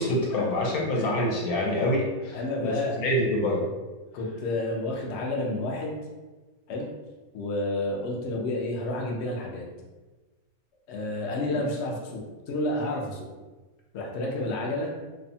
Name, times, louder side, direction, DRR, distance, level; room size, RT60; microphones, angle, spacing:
voice 1, 0.0-3.6 11.5-11.6, left 1 dB, 85° left, -3 dB, 1.1 m, -26 dB
voice 2, 0.6-1.1 2.3-3.0 4.1-6.0 6.7-6.9 7.3-9.7 10.9-13.3 13.9-15.0, left 1 dB, 65° left, -2 dB, 0.7 m, -30 dB
2.6 x 2.2 x 2.6 m, 1.2 s
omnidirectional pair, 1.6 m